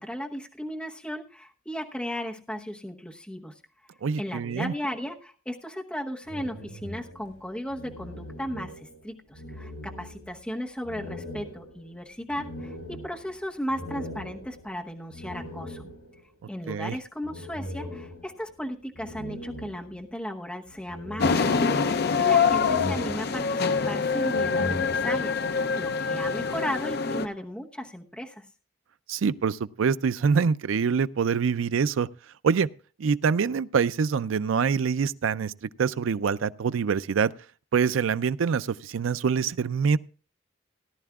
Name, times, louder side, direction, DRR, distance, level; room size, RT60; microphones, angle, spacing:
voice 1, 0.0-3.5 4.2-15.8 16.5-28.5, equal, 5° left, 1.0 m, -35 dB
voice 2, 4.0-4.7 16.7-17.0 29.1-32.1 32.4-32.7 33.0-35.5 35.8-37.3 37.7-40.0, right 6 dB, 75° right, 0.4 m, -25 dB
sound 1, 6.2-9.1 9.3-10.4 10.8-16.3 17.2-18.5 19.0-20.3 20.7-22.2 22.5-23.8 24.2-25.6, left 1 dB, 85° left, 4.3 m, -40 dB
sound 2, 21.2-27.3, left 5 dB, 50° left, 0.5 m, -25 dB
17.5 x 11.0 x 2.3 m
head